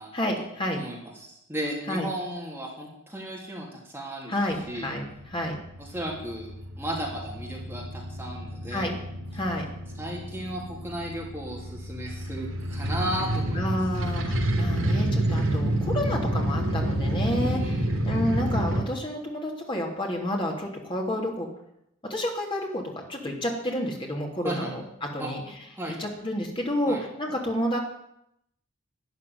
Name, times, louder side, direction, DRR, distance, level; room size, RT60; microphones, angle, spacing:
voice 1, 0.1-0.8 1.9-2.1 4.3-5.0 5.3-5.6 8.7-8.9 9.3-9.6 13.5-17.8 18.0-21.5 22.1-22.8 23.1-25.4 26.0-27.8, left 1 dB, 25° left, 0 dB, 3.1 m, -30 dB
voice 2, 0.7-4.3 4.7-4.9 5.8-8.9 10.0-13.8 17.3-17.9 24.4-24.7 25.2-25.3 25.8-26.1 26.9-27.0, right 1 dB, 10° right, -3 dB, 3.3 m, -35 dB
sound 1, 4.5-18.8, right 1 dB, 75° right, 3.4 m, -29 dB
13.0 x 10.5 x 9.5 m, 0.79 s
head